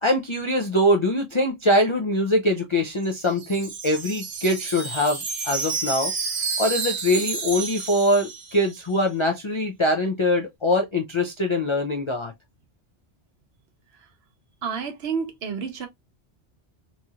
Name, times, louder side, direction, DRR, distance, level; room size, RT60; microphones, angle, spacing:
voice 1, 0.0-6.1 6.6-12.3, left 1 dB, 50° left, 0.3 m, -23 dB
Wind chime, 2.9-8.9, right 4 dB, 85° right, 1.2 m, -30 dB
voice 2, 14.6-15.9, right 6 dB, 65° right, 1.0 m, -29 dB
3.0 x 2.7 x 2.3 m
omnidirectional pair, 1.2 m